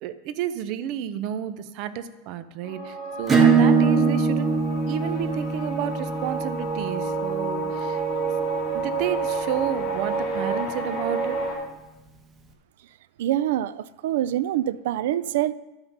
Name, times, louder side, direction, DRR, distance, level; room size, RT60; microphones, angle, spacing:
voice 1, 0.0-8.0 8.7-11.4, right 10 dB, 45° right, 12 dB, 0.7 m, -31 dB
sound 1, 2.6-11.5, right 3 dB, 40° left, 3.1 m, -29 dB
Acoustic guitar / Strum, 3.3-8.5, right 5 dB, 20° right, 1.1 m, -23 dB
voice 2, 13.2-15.5, right 12 dB, 75° right, 17 dB, 0.4 m, -25 dB
11.5 x 5.9 x 5.5 m, 1.0 s
supercardioid pair, 150°, 0 cm